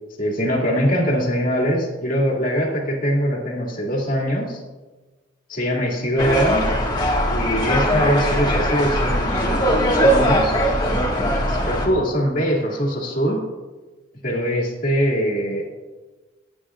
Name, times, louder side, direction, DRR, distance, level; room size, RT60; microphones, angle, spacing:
voice 1, 0.2-4.6 5.5-6.7 7.3-10.6 11.5-13.4 14.2-15.6, equal, 40° left, -1 dB, 2.4 m, -22 dB
sound 1, 6.2-11.9, equal, 20° left, 1.8 m, -20 dB
18.5 x 9.7 x 2.5 m, 1.2 s
head